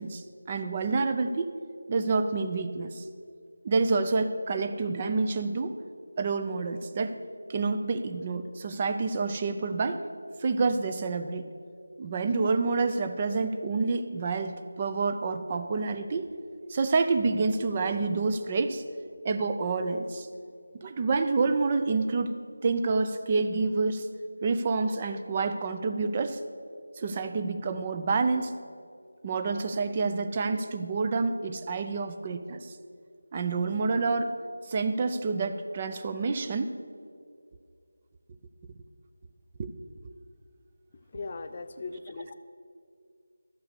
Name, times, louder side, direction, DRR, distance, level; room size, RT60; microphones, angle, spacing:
voice 1, 0.0-1.5 1.9-3.0 3.6-5.8 6.2-7.2 7.5-10.0 10.4-11.5 12.0-16.3 16.7-18.8 19.2-20.3 20.7-22.3 22.6-24.1 24.4-26.4 27.0-28.5 29.2-32.7 33.3-34.4 34.7-36.7 39.6-39.7, right 4 dB, 25° right, 8 dB, 0.5 m, -28 dB
voice 2, 41.1-42.3, left 3 dB, 35° left, 10 dB, 0.5 m, -38 dB
12.5 x 5.9 x 6.8 m, 2.2 s
figure-of-eight pair, 165°, 0 cm